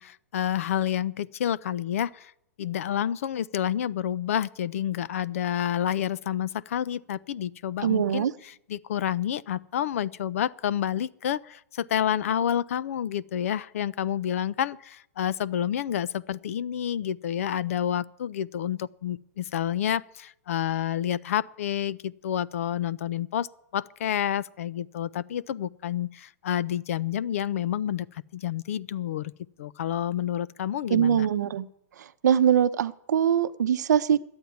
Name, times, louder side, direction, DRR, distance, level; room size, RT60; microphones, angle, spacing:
voice 1, 0.0-2.3 2.6-29.3 29.6-31.3, left 10 dB, 50° left, 0.4 m, -29 dB
voice 2, 7.8-8.3 30.9-31.7 32.2-34.2, right 9 dB, 75° right, 0.7 m, -22 dB
11.5 x 8.8 x 9.3 m
hypercardioid pair, 175°, 9 cm